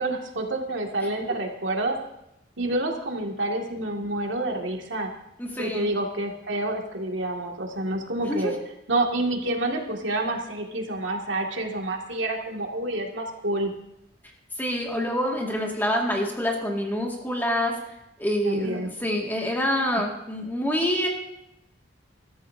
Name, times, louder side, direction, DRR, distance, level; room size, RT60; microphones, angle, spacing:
voice 1, 0.0-2.0 2.6-5.1 5.6-8.5 8.9-13.7 18.4-18.9, right 2 dB, 80° right, 1 dB, 2.3 m, -28 dB
voice 2, 5.4-5.9 8.2-8.5 14.6-17.8 18.2-21.1, equal, 10° left, -1 dB, 2.1 m, -26 dB
22.0 x 13.0 x 2.8 m, 0.85 s
head